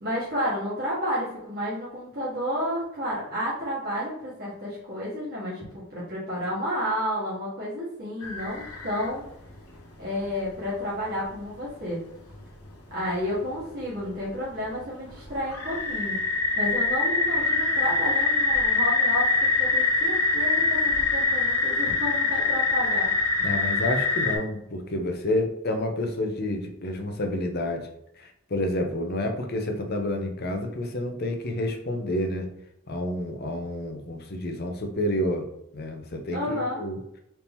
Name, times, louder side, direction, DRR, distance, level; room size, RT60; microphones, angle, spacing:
voice 1, 0.0-9.2 10.0-12.0 12.9-16.2 16.6-19.3 19.6-23.1 36.3-36.8, equal, 45° right, -8 dB, 1.4 m, -31 dB
sound 1, 8.2-9.1 9.5-9.6 10.5-10.6 11.6-11.7 12.3-12.4 12.6-12.7 14.0-14.2 14.6-14.7 15.1-24.4, left 3 dB, 85° left, 1.0 m, -24 dB
voice 2, 23.4-27.9 28.2-32.5 32.9-35.5 35.7-37.0, left 1 dB, 45° left, 4 dB, 0.7 m, -29 dB
4.3 x 2.8 x 3.5 m, 0.80 s
head